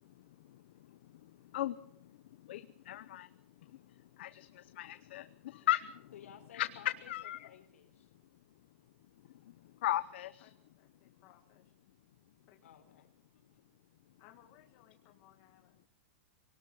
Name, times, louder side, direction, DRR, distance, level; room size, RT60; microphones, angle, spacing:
voice 1, 2.5-3.3 4.2-4.5 4.8-5.3 5.7-5.9 6.5-6.7 7.1-7.5 9.8-10.3, left 14 dB, 50° left, 12 dB, 0.8 m, -34 dB
voice 2, 6.1-8.1 12.6-13.1 13.3-13.6, left 8 dB, 75° left, 5 dB, 4.2 m, -56 dB
voice 3, 10.4-11.6 12.5-12.6 14.2-15.9, left 12 dB, 25° left, 3 dB, 1.9 m, -63 dB
23.5 x 18.5 x 6.2 m, 0.68 s
supercardioid pair, 180°, 7 cm